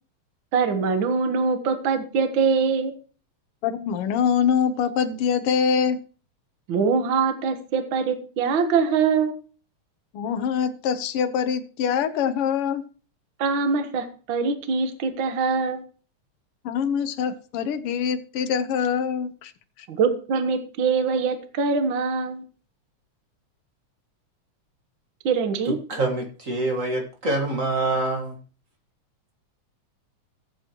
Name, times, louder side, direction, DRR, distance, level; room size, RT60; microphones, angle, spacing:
voice 1, 0.5-2.9 6.7-9.3 13.4-15.8 19.9-22.4 25.2-25.8, right 5 dB, 50° right, 8 dB, 1.7 m, -23 dB
voice 2, 3.6-6.0 10.1-12.8 16.6-19.5, left 7 dB, 65° left, 9 dB, 1.5 m, -24 dB
voice 3, 25.6-28.4, right 2 dB, 35° right, 2 dB, 1.5 m, -26 dB
15.0 x 8.8 x 3.0 m, 0.39 s
omnidirectional pair, 3.3 m